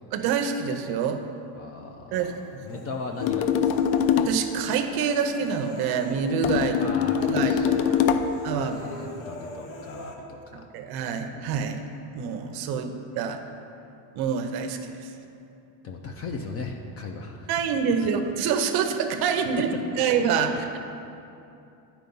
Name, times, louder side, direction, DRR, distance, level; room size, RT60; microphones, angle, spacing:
voice 1, 0.1-1.2 2.1-2.8 4.2-6.9 7.3-8.0 8.4-8.8 10.7-11.8 12.1-13.4 14.2-15.1 17.5-19.7 20.0-20.8, right 6 dB, 50° right, 7 dB, 0.7 m, -27 dB
voice 2, 1.5-2.3 2.6-3.9 6.8-10.6 15.8-17.5 18.0-18.1 20.5-20.8, left 3 dB, 30° left, 3 dB, 0.4 m, -38 dB
Human voice, 2.1-3.3 3.7-6.9 7.1-7.4 7.7-10.1, left 2 dB, 65° left, 1.2 m, -43 dB
sound 1, 3.2-4.4 6.4-8.4, left 8 dB, 90° left, 0.6 m, -23 dB
9.1 x 4.6 x 5.4 m, 2.7 s
cardioid pair, 135°, 49 cm